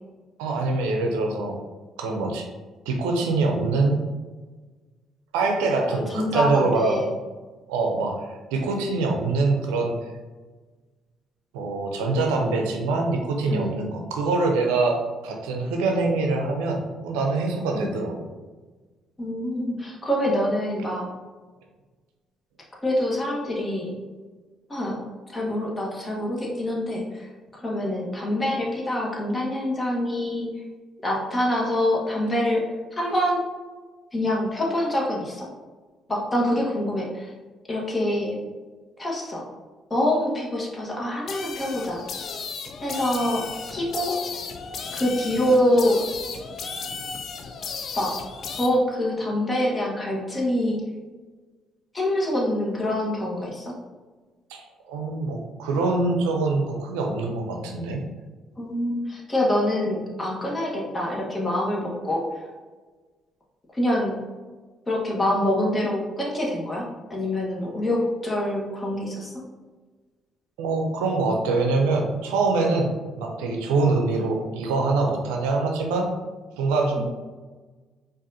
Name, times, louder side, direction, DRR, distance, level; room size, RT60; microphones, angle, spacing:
voice 1, 0.4-1.5 2.0-2.5 2.9-4.0 5.3-7.0 7.7-10.0 11.5-15.0 15.2-18.3 54.5-58.0 70.6-72.9 73.2-76.1 76.6-77.0, right 3 dB, 85° right, 2 dB, 0.5 m, -24 dB
voice 2, 5.9-7.1 13.5-13.8 17.7-17.9 19.2-21.1 22.8-23.9 24.7-25.0 25.3-30.5 31.0-32.6 32.9-33.5 34.1-35.5 36.1-37.3 37.7-38.4 39.0-39.5 39.9-42.0 42.8-44.2 44.9-46.0 47.9-48.1 48.5-50.8 51.9-53.7 58.6-62.2 63.7-64.2 64.9-69.3 77.0-77.1, left 1 dB, 25° left, -3 dB, 1.3 m, -25 dB
sound 1, 41.3-48.7, left 5 dB, 55° left, 0.5 m, -35 dB
4.8 x 2.6 x 2.7 m, 1.3 s
hypercardioid pair, 55°, 0 cm